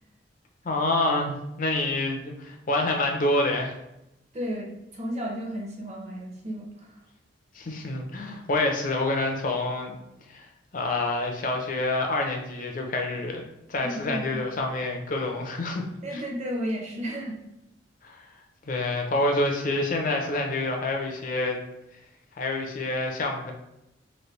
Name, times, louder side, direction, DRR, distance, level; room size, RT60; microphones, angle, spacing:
voice 1, 0.6-3.8 7.5-9.9 10.3-10.5 10.7-13.4 13.7-15.8 16.1-16.2 18.0-18.2 18.7-21.6 22.4-23.5, left 2 dB, 50° left, 2 dB, 0.6 m, -27 dB
voice 2, 4.3-4.7 4.9-6.9 13.8-14.4 16.0-17.4, equal, 40° right, -1 dB, 0.8 m, -33 dB
3.2 x 2.7 x 3.1 m, 0.86 s
head